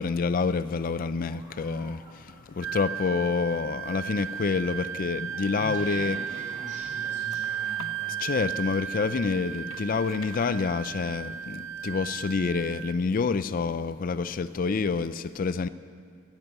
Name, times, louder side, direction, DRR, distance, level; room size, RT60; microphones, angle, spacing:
voice 1, 0.0-6.2 8.2-15.7, left 4 dB, 45° left, 0.4 m, -28 dB
Laughter, 1.2-9.5, right 1 dB, 20° right, 2.5 m, -58 dB
Wind instrument woodwind instrument, 2.6-13.0, right 9 dB, 70° right, 0.4 m, -35 dB
voice 2, 5.6-8.2, equal, 40° right, 4.5 m, -42 dB
sound 1, 6.2-8.1 8.7-11.2, left 6 dB, 85° left, 0.7 m, -49 dB
14.0 x 11.0 x 8.1 m
head